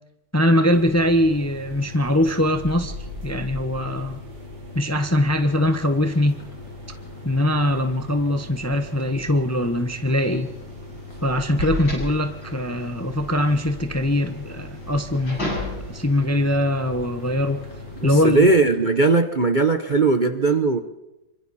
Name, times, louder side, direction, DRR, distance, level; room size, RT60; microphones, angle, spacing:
voice 1, 0.3-3.0 3.2-4.2 4.7-6.4 7.2-10.5 11.2-15.4 15.9-17.6 18.0-18.5, left 1 dB, 10° left, 0.9 m, -22 dB
sound 1, 0.7-18.6, left 2 dB, 90° right, 5.4 m, -38 dB
sound 2, 5.9-19.2, left 2 dB, 50° left, 3.7 m, -49 dB
sound 3, 10.2-16.2, left 1 dB, 80° left, 8.9 m, -34 dB
voice 2, 18.0-20.8, right 3 dB, 35° right, 0.9 m, -18 dB
26.5 x 25.0 x 4.3 m
omnidirectional pair, 2.0 m